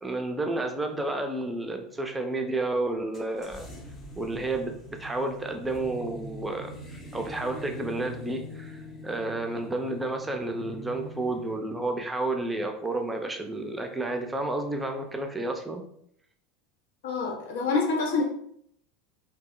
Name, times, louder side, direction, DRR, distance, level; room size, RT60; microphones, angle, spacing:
voice 1, 0.0-3.7 4.2-15.8, right 2 dB, 10° right, 4 dB, 0.5 m, -31 dB
sound 1, 3.1-15.3, left 1 dB, 30° left, 0.7 m, -45 dB
voice 2, 17.0-18.2, left 4 dB, 80° left, 0 dB, 0.6 m, -26 dB
2.2 x 2.0 x 3.6 m, 0.68 s
hypercardioid pair, 95°, 0 cm